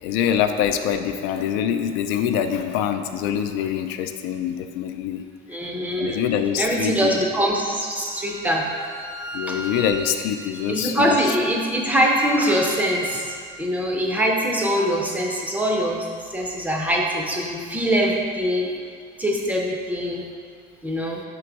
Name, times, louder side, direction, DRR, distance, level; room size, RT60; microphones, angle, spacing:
voice 1, 0.0-5.2 6.0-7.2 9.3-11.3, left 9 dB, 70° left, 7 dB, 0.4 m, -24 dB
voice 2, 5.5-6.2 6.6-8.7 9.5-9.6 10.7-13.3 13.6-18.7 19.2-20.2 20.8-21.2, equal, 10° right, -1 dB, 0.5 m, -23 dB
Bowed string instrument, 8.0-13.4, right 1 dB, 55° right, 0.8 m, -38 dB
6.0 x 3.8 x 4.5 m, 2.1 s
cardioid pair, 175°, 18 cm